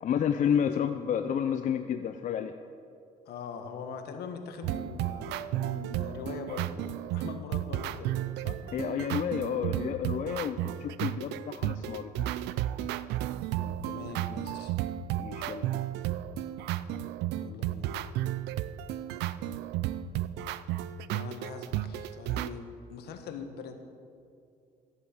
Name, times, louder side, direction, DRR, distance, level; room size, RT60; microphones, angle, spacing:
voice 1, 0.0-2.5 8.7-12.3 15.2-15.7, left 8 dB, 50° left, 8 dB, 0.6 m, -30 dB
voice 2, 3.2-6.9 7.1-8.6 13.6-14.8 17.3-17.9 21.1-23.7, left 6 dB, 70° left, 6 dB, 1.5 m, -42 dB
sound 1, 4.6-22.5, right 13 dB, 85° right, 0.5 m, -33 dB
14.0 x 8.3 x 7.2 m, 2.5 s
cardioid pair, 110°, 17 cm